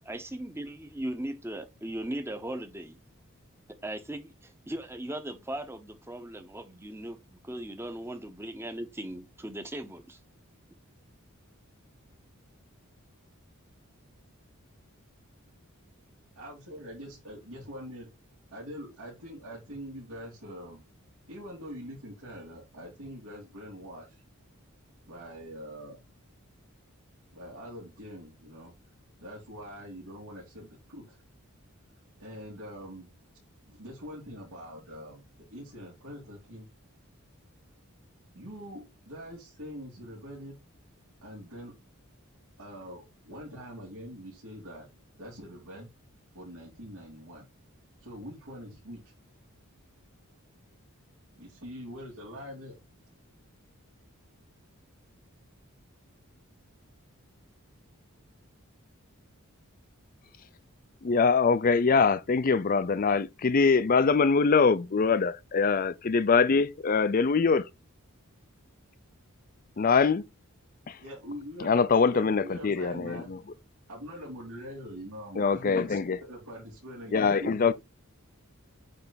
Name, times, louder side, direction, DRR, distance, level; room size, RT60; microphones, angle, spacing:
voice 1, 0.0-3.0 3.8-10.2, right 1 dB, 10° right, 0.8 m, -38 dB
voice 2, 16.4-18.1 18.5-20.8 21.3-24.2 25.0-26.0 27.3-28.7 29.2-31.2 32.2-33.1 33.6-35.2 35.5-36.7 38.3-40.6 41.2-41.7 42.6-44.9 45.2-45.9 46.3-47.5 48.0-49.1 51.3-52.8 71.0-71.7 72.0-73.3 73.9-77.7, equal, 85° right, 3.2 m, -43 dB
voice 3, 61.0-67.6 69.8-70.2 70.9-71.0 71.6-73.4 75.4-76.2 77.1-77.7, left 5 dB, 40° left, 0.4 m, -23 dB
8.6 x 3.3 x 4.0 m
head